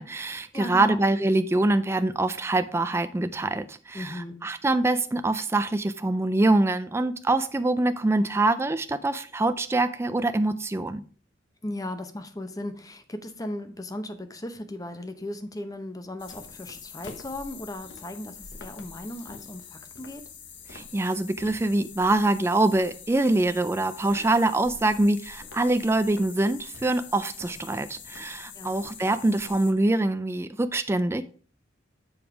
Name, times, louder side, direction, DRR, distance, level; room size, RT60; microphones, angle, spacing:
voice 1, 0.0-11.0 20.7-31.2, right 2 dB, 15° right, 0.3 m, -24 dB
voice 2, 0.5-1.0 3.9-4.4 11.6-20.3 28.5-28.7, left 1 dB, 20° left, 0.7 m, -37 dB
sound 1, 16.2-29.7, left 6 dB, 70° left, 1.0 m, -45 dB
7.1 x 5.1 x 4.6 m
head